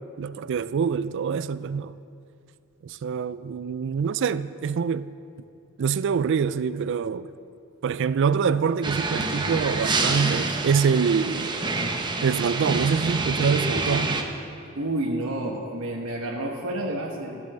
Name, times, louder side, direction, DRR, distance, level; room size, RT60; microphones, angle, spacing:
voice 1, 0.2-1.9 2.8-5.1 5.8-7.3 7.8-11.6 12.2-14.2, right 6 dB, 60° right, 0.4 m, -25 dB
sound 1, 8.8-14.2, right 3 dB, 20° right, 0.8 m, -27 dB
voice 2, 14.7-17.4, right 1 dB, 85° right, 1.1 m, -29 dB
13.0 x 8.3 x 6.7 m
head